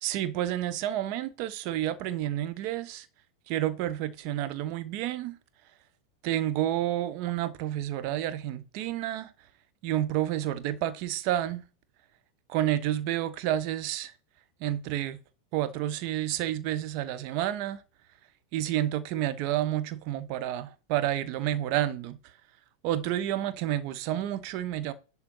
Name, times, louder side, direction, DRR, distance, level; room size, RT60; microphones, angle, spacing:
voice 1, 0.0-3.1 3.5-5.4 6.2-9.3 9.8-11.6 12.5-14.1 14.6-15.2 15.5-17.8 18.5-22.2 22.8-24.9, right 13 dB, 45° right, 1.1 m, -30 dB
11.5 x 4.1 x 5.6 m
figure-of-eight pair, 90°, 0 cm